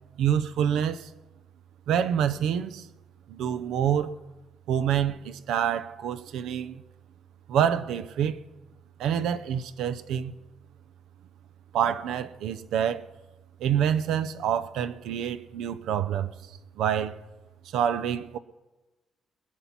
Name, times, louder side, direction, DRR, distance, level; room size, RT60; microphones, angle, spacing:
voice 1, 0.2-1.1 1.9-2.9 3.3-4.1 4.7-6.8 7.5-8.4 9.0-10.3 11.7-13.0 13.6-16.3 16.8-17.2 17.7-18.4, right 9 dB, 85° right, 0.6 m, -27 dB
21.0 x 7.2 x 5.9 m
cardioid pair, 90°, 0 cm